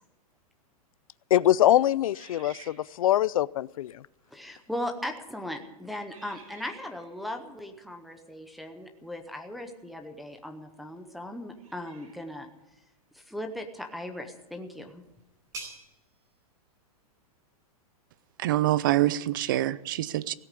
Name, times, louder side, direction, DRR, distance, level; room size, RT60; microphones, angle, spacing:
voice 1, 1.3-4.0, left 12 dB, 65° left, 0.5 m, -23 dB
sound 1, 2.1-3.3 4.1-4.3 5.0-5.3 6.1-7.2 9.9-10.0 11.5-12.4, right 5 dB, 65° right, 5.4 m, -52 dB
voice 2, 4.3-12.5 13.1-15.0, left 1 dB, ahead, 0.7 m, -38 dB
sound 2, 14.2-19.6, right 2 dB, 15° right, 4.4 m, -50 dB
voice 3, 18.4-20.3, right 14 dB, 35° right, 0.5 m, -25 dB
17.0 x 8.7 x 9.7 m
supercardioid pair, 180°, 19 cm